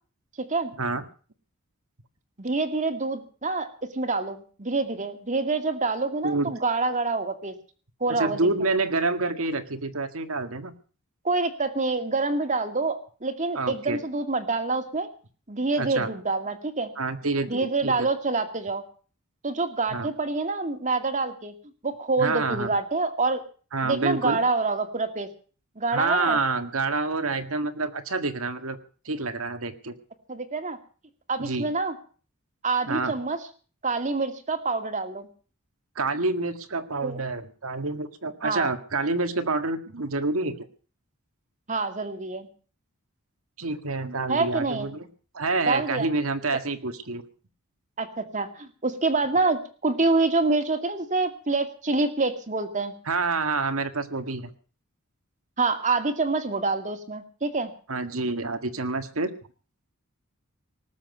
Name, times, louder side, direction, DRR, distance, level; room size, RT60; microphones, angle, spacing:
voice 1, 0.4-0.7 2.4-3.7 3.9-7.5 8.0-8.4 11.2-15.1 15.5-16.9 17.5-18.8 19.4-21.5 21.8-23.4 23.8-25.3 25.8-26.4 30.3-30.8 31.3-32.0 32.6-33.4 33.8-35.3 37.0-37.2 38.4-38.7 41.7-42.5 44.3-44.9 45.7-46.1 48.0-52.9 55.6-57.7, right 3 dB, 35° right, 7 dB, 2.2 m, -26 dB
voice 2, 8.1-10.7 13.5-14.0 15.8-16.1 17.0-18.1 19.9-20.1 22.2-22.7 23.7-24.4 25.9-28.8 29.0-29.9 31.4-31.7 32.9-33.1 35.9-40.7 43.6-45.1 45.3-47.2 53.1-54.5 57.9-59.3, right 3 dB, 70° right, 9 dB, 1.8 m, -28 dB
19.5 x 7.5 x 9.3 m, 0.41 s
head